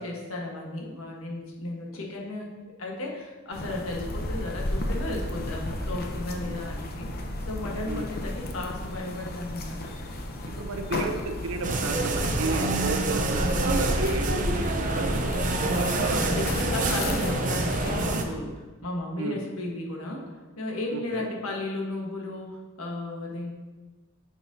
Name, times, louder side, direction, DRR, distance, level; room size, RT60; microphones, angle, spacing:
voice 1, 0.0-2.5 2.8-7.1 7.5-9.9 15.9-20.3 20.6-23.5, left 2 dB, 80° left, -1 dB, 1.4 m, -34 dB
sound 1, 3.5-18.2, left 1 dB, 45° left, 0.7 m, -33 dB
voice 2, 10.6-16.4 16.8-16.9 19.2-19.5 20.9-21.3, right 3 dB, 85° right, 6 dB, 0.7 m, -34 dB
sound 2, 11.6-18.2, right 2 dB, 40° right, 0.6 m, -27 dB
9.1 x 6.0 x 2.8 m, 1.2 s
head